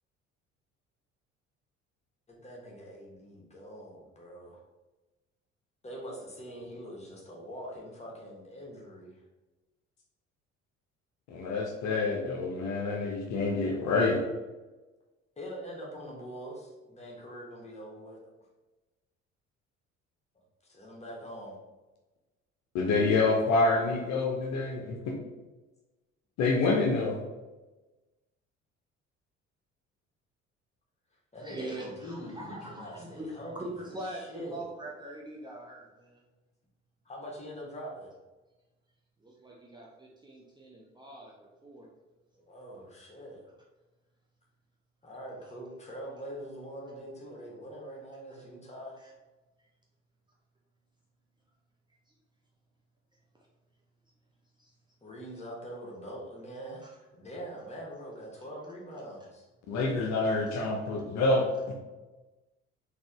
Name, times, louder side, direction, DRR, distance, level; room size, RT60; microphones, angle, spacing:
voice 1, 2.3-4.6 5.8-9.2 15.4-18.2 20.7-21.6 31.3-34.7 37.0-38.1 42.3-43.4 45.0-49.0 55.0-59.5, equal, 20° left, -3 dB, 1.3 m, -43 dB
voice 2, 11.3-14.2 22.7-25.1 26.4-27.2 59.7-61.5, left 3 dB, 45° left, 1 dB, 0.7 m, -27 dB
voice 3, 31.4-33.3 33.5-36.2 39.2-41.9 49.0-49.1 54.6-54.7, right 2 dB, 10° right, -3 dB, 0.7 m, -42 dB
4.0 x 2.9 x 3.5 m, 1.1 s
figure-of-eight pair, 50°, 37 cm